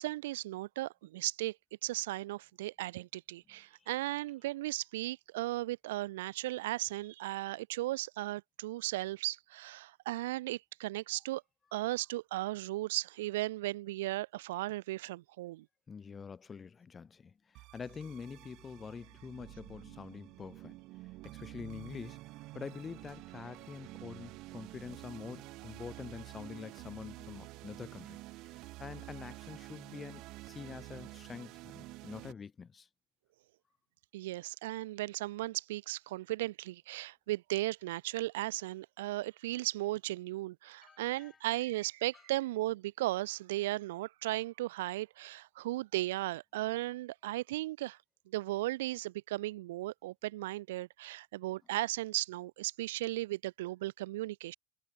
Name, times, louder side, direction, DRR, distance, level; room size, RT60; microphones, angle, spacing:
voice 1, 0.0-1.6 1.8-11.4 11.7-15.6 34.1-48.0 48.3-54.5, right 17 dB, 85° right, 1.4 m, -36 dB
voice 2, 15.9-20.7 21.0-22.2 22.5-32.9 40.8-41.4 42.1-42.2, left 5 dB, 20° left, 1.4 m, -46 dB
sound 1, 17.5-32.3, right 20 dB, 50° right, 5.0 m, -49 dB
supercardioid pair, 145°, 0 cm